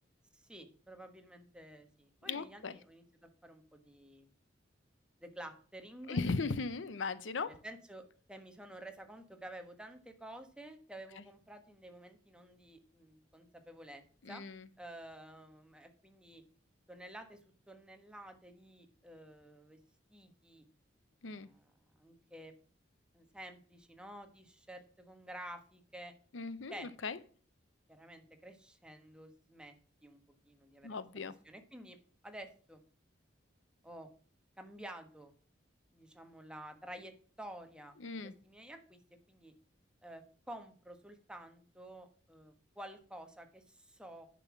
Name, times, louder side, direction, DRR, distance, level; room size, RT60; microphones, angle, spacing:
voice 1, 0.3-4.3 5.2-6.2 7.5-14.0 14.3-14.4 14.8-16.4 16.9-17.4 17.7-19.8 20.1-20.6 21.2-22.5 23.1-26.1 26.7-26.9 27.9-29.8 30.0-30.2 30.4-31.0 31.4-32.0 32.2-32.8 33.8-34.1 34.6-35.3 35.9-39.0 39.3-39.5 40.0-44.3, right 1 dB, 5° right, 5 dB, 1.3 m, -51 dB
voice 2, 2.3-2.7 6.1-7.5 14.3-14.7 21.2-21.5 26.3-27.2 30.8-31.3 38.0-38.3, left 4 dB, 80° left, 15 dB, 0.7 m, -37 dB
10.0 x 6.2 x 6.0 m, 0.42 s
head